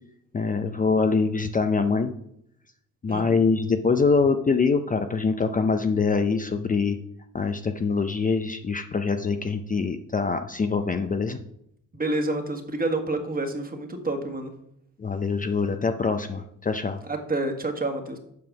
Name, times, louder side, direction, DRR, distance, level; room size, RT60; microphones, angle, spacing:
voice 1, 0.3-2.1 3.0-7.0 7.3-11.4 15.0-17.0, left 4 dB, 25° left, 7 dB, 0.6 m, -24 dB
voice 2, 3.1-3.4 11.9-14.5 17.1-18.2, right 2 dB, 25° right, 5 dB, 1.6 m, -28 dB
7.7 x 5.4 x 6.0 m, 0.76 s
cardioid pair, 85°, 32 cm